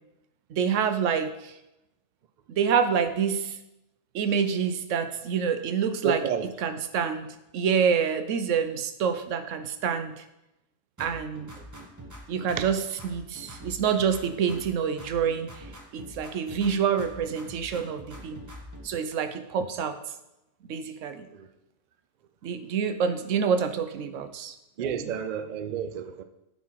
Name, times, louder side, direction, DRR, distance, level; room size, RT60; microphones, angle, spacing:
voice 1, 0.5-1.5 2.5-3.6 4.1-6.2 6.6-7.3 7.5-10.2 11.0-11.5 12.3-15.5 15.9-18.4 18.8-20.0 20.7-21.3 22.4-24.5 24.9-25.1, right 7 dB, 90° right, 10 dB, 1.0 m, -27 dB
voice 2, 6.0-6.5 12.6-12.7 24.8-26.2, right 7 dB, 60° right, 10 dB, 0.4 m, -30 dB
sound 1, 11.0-12.7 13.0-14.7 15.0-16.7 17.0-18.9, equal, 15° right, 0.9 m, -44 dB
9.1 x 4.3 x 4.6 m, 0.91 s
omnidirectional pair, 1.2 m